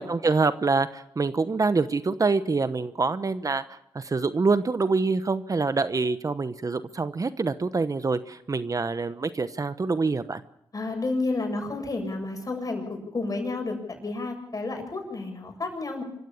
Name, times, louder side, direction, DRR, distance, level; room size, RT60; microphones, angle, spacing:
voice 1, 0.0-10.4, right 4 dB, 40° right, 12 dB, 1.0 m, -26 dB
voice 2, 10.7-16.0, left 3 dB, 40° left, 4 dB, 7.4 m, -31 dB
26.5 x 15.0 x 7.1 m, 0.78 s
cardioid pair, 60°, 9 cm